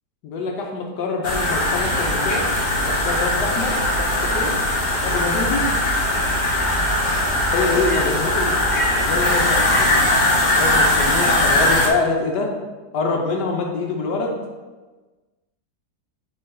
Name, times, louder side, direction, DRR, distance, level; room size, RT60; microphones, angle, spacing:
voice 1, 0.2-2.4 2.8-4.5 5.0-5.6 7.5-8.5 9.0-10.0 10.6-12.5 12.9-14.4, left 3 dB, 90° left, 1 dB, 1.4 m, -25 dB
sound 1, 1.2-11.9, left 1 dB, 45° left, 0.6 m, -20 dB
6.8 x 4.3 x 3.7 m, 1.3 s
omnidirectional pair, 1.8 m